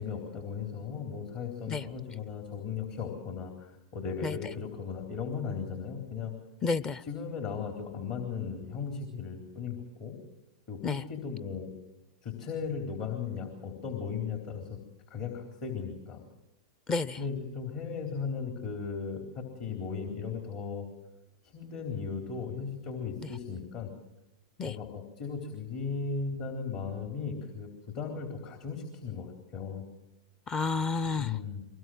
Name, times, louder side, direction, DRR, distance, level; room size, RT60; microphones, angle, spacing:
voice 1, 0.0-6.3 7.0-10.2 10.7-11.7 12.2-14.8 15.1-16.2 17.2-20.9 21.4-23.9 24.6-27.7 27.9-29.9 31.2-31.6, left 6 dB, 50° left, 4 dB, 3.7 m, -36 dB
voice 2, 6.6-7.0 10.8-11.0 16.9-17.2 24.6-24.7 30.5-31.3, left 4 dB, 25° left, 17 dB, 0.8 m, -30 dB
23.0 x 20.5 x 7.8 m, 0.93 s
hypercardioid pair, 105°, 3 cm